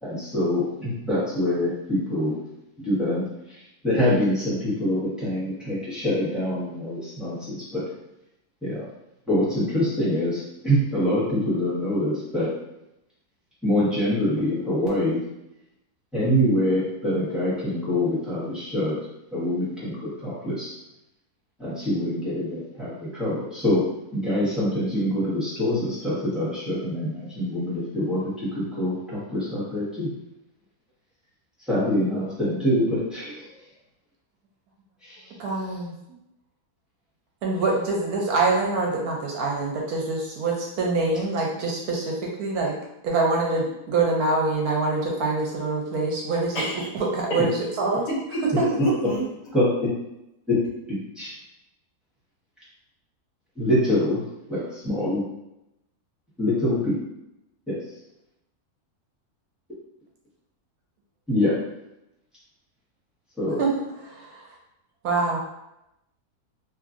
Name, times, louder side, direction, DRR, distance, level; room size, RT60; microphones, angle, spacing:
voice 1, 0.0-2.4 2.8-3.2 3.8-7.8 8.6-8.8 9.3-12.5 13.6-15.2 16.1-18.9 19.3-20.7 21.6-23.8 24.1-30.1 31.7-33.5 35.0-35.2 48.7-48.8 49.5-49.9 50.9-51.3 53.6-54.2 54.5-55.2 56.4-56.9 57.7-57.8 61.3-61.5 63.4-63.6, left 1 dB, ahead, -11 dB, 0.9 m, -25 dB
voice 2, 35.4-35.9 37.4-42.7 43.0-48.0 48.6-48.9 63.6-63.8 64.0-64.4 65.0-65.4, right 3 dB, 75° right, -1 dB, 1.0 m, -25 dB
voice 3, 46.5-46.9 48.1-49.2, right 1 dB, 65° left, -4 dB, 1.1 m, -27 dB
2.9 x 2.4 x 2.4 m, 0.88 s
omnidirectional pair, 1.6 m